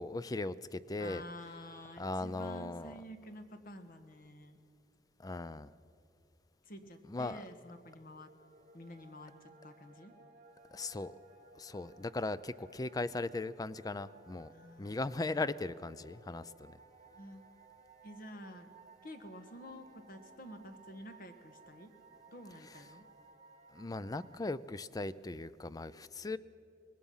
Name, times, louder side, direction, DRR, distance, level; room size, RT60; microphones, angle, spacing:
voice 1, 0.0-1.2 2.0-2.9 5.2-5.7 7.1-7.4 10.7-11.1 11.5-14.5 14.8-16.8 23.7-26.4, left 2 dB, 20° left, 16 dB, 0.4 m, -38 dB
voice 2, 1.0-4.6 6.6-8.3 8.7-10.1 14.5-15.0 17.2-17.5 18.0-18.7 19.0-21.9 22.3-23.1, equal, 55° left, 7 dB, 1.4 m, -50 dB
sound 1, 7.9-24.4, right 3 dB, 40° right, 1.6 m, -60 dB
24.5 x 19.5 x 5.6 m, 2.5 s
head